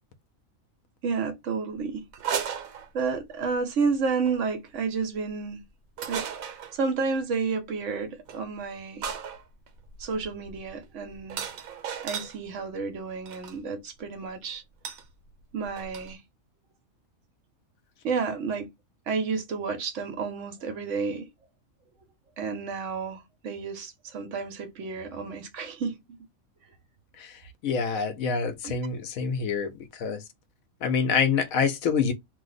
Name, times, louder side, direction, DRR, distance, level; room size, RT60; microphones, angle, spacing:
voice 1, 1.0-2.0 2.9-5.6 6.1-9.1 10.0-11.4 12.0-14.6 15.5-16.2 18.0-18.7 19.1-21.3 22.4-26.2 28.6-28.8, right 5 dB, 65° right, 1.1 m, -31 dB
sound 1, 2.1-3.3 4.1-4.4 6.0-6.8 8.3-8.4 9.0-12.4 13.3-13.6 14.8-15.1 15.3-15.4 15.6-16.1, right 7 dB, 90° right, 1.1 m, -35 dB
voice 2, 27.6-30.2 30.8-32.1, left 6 dB, 90° left, 1.1 m, -26 dB
2.8 x 2.0 x 3.9 m
omnidirectional pair, 1.4 m